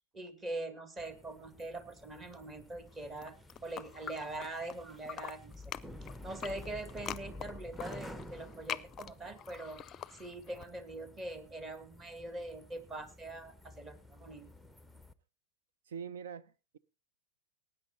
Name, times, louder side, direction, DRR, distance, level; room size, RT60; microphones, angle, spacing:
voice 1, 0.1-3.4 3.6-5.7 6.2-9.8 10.1-14.5, right 2 dB, 20° right, 1.9 m, -43 dB
sound 1, 1.0-15.1, left 1 dB, ahead, 0.8 m, -52 dB
sound 2, 3.1-4.8 5.0-10.7, left 9 dB, 30° left, 0.6 m, -44 dB
voice 2, 15.9-16.8, right 7 dB, 65° right, 0.8 m, -44 dB
19.0 x 9.1 x 4.1 m
figure-of-eight pair, 95°, 0 cm